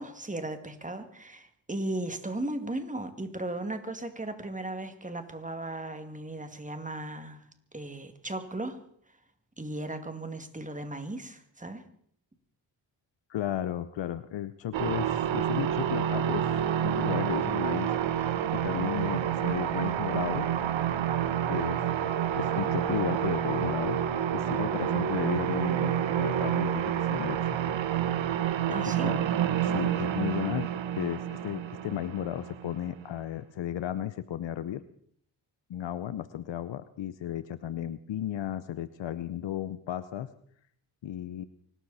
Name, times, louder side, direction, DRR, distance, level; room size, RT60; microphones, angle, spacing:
voice 1, 0.0-7.4 7.7-8.8 9.6-11.8 28.7-29.1, right 2 dB, 15° right, 8 dB, 2.3 m, -36 dB
voice 2, 13.3-16.5 16.8-20.5 21.5-21.8 22.4-24.0 24.3-27.8 28.7-29.2 29.6-30.7 31.0-34.8 35.7-40.3 41.0-41.5, left 11 dB, 75° left, 14 dB, 0.8 m, -34 dB
sound 1, 14.7-33.1, right 10 dB, 85° right, 1.1 m, -29 dB
24.5 x 13.0 x 4.2 m, 0.63 s
cardioid pair, 60°, 44 cm